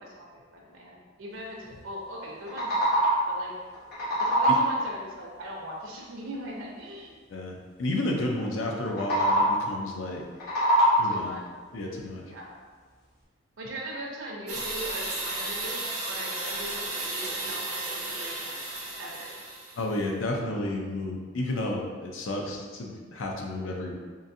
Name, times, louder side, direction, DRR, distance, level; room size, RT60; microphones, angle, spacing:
voice 1, 0.0-3.5 4.2-7.2 11.0-11.4 12.2-12.6 13.6-19.3, equal, 90° right, -2 dB, 0.6 m, -40 dB
sound 1, 2.3-3.4 3.7-4.9 8.9-9.7 10.2-11.3, right 1 dB, 55° left, 1.2 m, -24 dB
voice 2, 7.3-10.2 11.0-11.4 11.7-12.2 19.7-23.9, left 1 dB, 80° left, 0 dB, 0.5 m, -31 dB
sound 2, 14.5-19.9, right 2 dB, 35° right, 0.8 m, -34 dB
3.8 x 2.5 x 2.6 m, 1.5 s
head